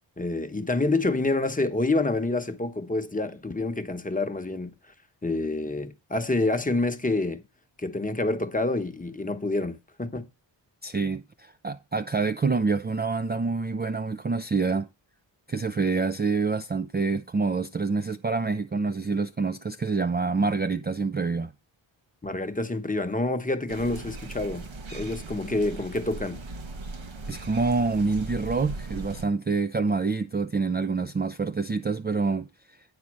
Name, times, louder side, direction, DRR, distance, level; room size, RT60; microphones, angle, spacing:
voice 1, 0.2-4.7 5.2-7.4 7.8-10.3 22.2-26.4, left 2 dB, 15° left, 1.0 m, -27 dB
voice 2, 10.8-14.9 15.5-21.5 27.3-32.5, right 4 dB, 20° right, 0.4 m, -27 dB
sound 1, 23.7-29.2, right 2 dB, 75° right, 1.6 m, -38 dB
9.7 x 4.2 x 6.2 m
cardioid pair, 75°, 46 cm